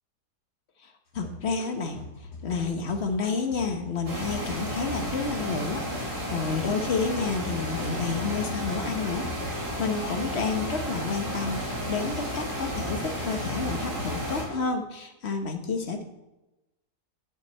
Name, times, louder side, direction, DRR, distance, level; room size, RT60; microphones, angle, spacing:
voice 1, 0.8-16.0, left 4 dB, 45° left, 5 dB, 1.3 m, -30 dB
sound 1, 1.1-8.9 9.2-11.4 11.8-14.6, left 2 dB, 75° left, 2.4 m, -44 dB
sound 2, 4.1-14.4, equal, 75° right, 3.2 m, -32 dB
10.0 x 7.9 x 4.3 m, 0.99 s
omnidirectional pair, 1.7 m